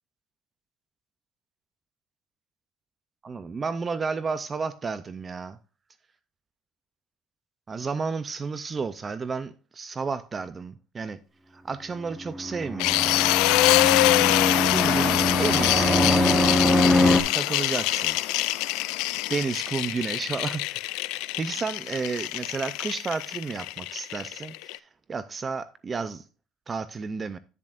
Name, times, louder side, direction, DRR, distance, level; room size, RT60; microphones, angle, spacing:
voice 1, 3.2-5.6 7.7-11.2 11.5-13.3 14.6-18.2 19.3-20.6 21.1-26.2 26.7-27.4, right 4 dB, 20° right, 0.4 m, -32 dB
Fixed-wing aircraft airplane, 12.3-17.2, left 1 dB, 5° right, 0.8 m, -23 dB
sound 1, 12.8-24.8, left 19 dB, 80° left, 0.3 m, -25 dB
9.8 x 7.2 x 2.5 m
cardioid pair, 150°, 0 cm